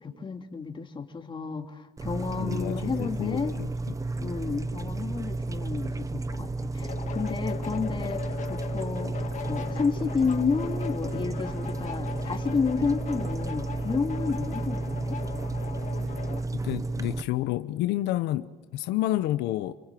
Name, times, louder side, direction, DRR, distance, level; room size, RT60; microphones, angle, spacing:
voice 1, 0.0-3.5 4.2-15.2, left 5 dB, 30° left, 2.9 m, -31 dB
sound 1, 2.0-17.2, right 2 dB, 20° right, 1.0 m, -32 dB
voice 2, 2.4-3.7 16.5-19.7, left 15 dB, 90° left, 1.0 m, -29 dB
sound 2, 6.8-16.5, left 8 dB, 45° left, 2.0 m, -39 dB
28.0 x 24.5 x 7.7 m
cardioid pair, 110°, 17 cm